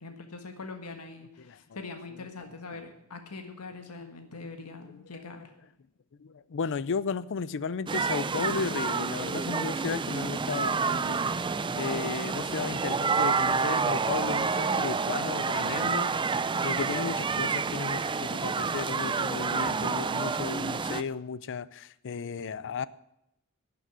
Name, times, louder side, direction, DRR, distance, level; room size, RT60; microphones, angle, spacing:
voice 1, 0.0-5.4, left 3 dB, 90° left, 1.6 m, -43 dB
voice 2, 6.2-16.1 16.6-22.9, left 5 dB, 55° left, 0.5 m, -34 dB
sound 1, 7.9-21.0, right 5 dB, 20° right, 0.4 m, -29 dB
12.0 x 6.8 x 9.3 m
head